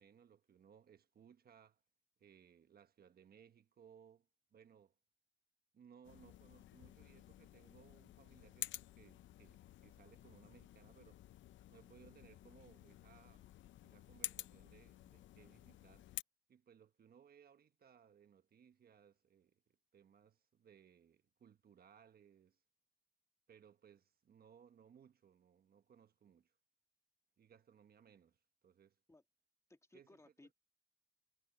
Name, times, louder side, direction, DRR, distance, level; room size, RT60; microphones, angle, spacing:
voice 1, 0.0-1.8 2.2-4.9 5.7-11.2 11.7-13.5 13.8-16.1 16.5-22.6 23.5-26.5 27.4-29.0 29.9-30.2, right 8 dB, 50° right, 1.3 m, -65 dB
sound 1, 6.0-16.2, left 13 dB, 70° left, 0.6 m, -52 dB
voice 2, 29.7-30.5, left 2 dB, 15° left, 2.3 m, -63 dB
cardioid pair, 90°, 20 cm